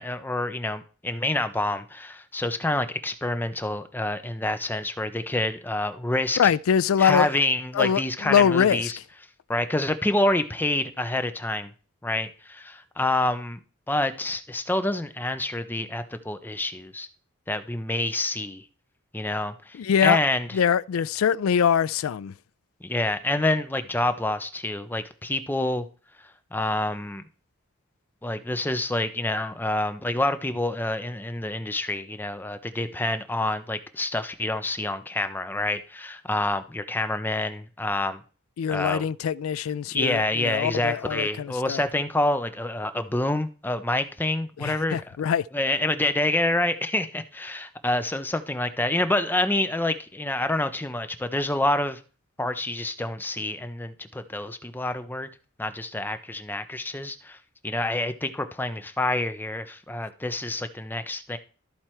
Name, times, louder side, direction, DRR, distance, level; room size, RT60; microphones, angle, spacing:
voice 1, 0.0-6.5 7.0-9.0 9.5-11.7 12.0-13.6 13.9-17.1 17.5-18.6 19.1-20.6 22.8-25.9 26.5-27.2 28.2-38.2 38.7-39.1 39.9-45.2 45.5-52.0 52.4-55.3 55.6-57.4 57.6-61.4, left 2 dB, 10° left, 0.6 m, -27 dB
voice 2, 6.4-7.3 7.7-8.9 19.8-20.2 20.5-22.3 38.6-41.8 44.6-45.4, left 8 dB, 80° left, 0.4 m, -23 dB
13.0 x 4.5 x 4.4 m
head